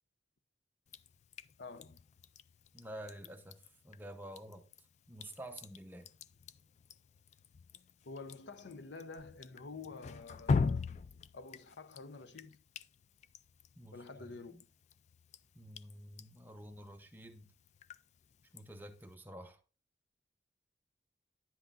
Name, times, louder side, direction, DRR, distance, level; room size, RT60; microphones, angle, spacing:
Drip, 0.9-19.1, left 4 dB, 40° left, 0.3 m, -43 dB
voice 1, 1.6-2.0 8.0-10.8 11.3-12.6 13.9-14.7, left 3 dB, 85° left, 0.7 m, -48 dB
voice 2, 2.7-4.6 5.1-6.1 13.8-14.6 15.5-17.5 18.5-19.6, right 1 dB, 10° right, 0.8 m, -50 dB
10.0 x 7.8 x 2.5 m
head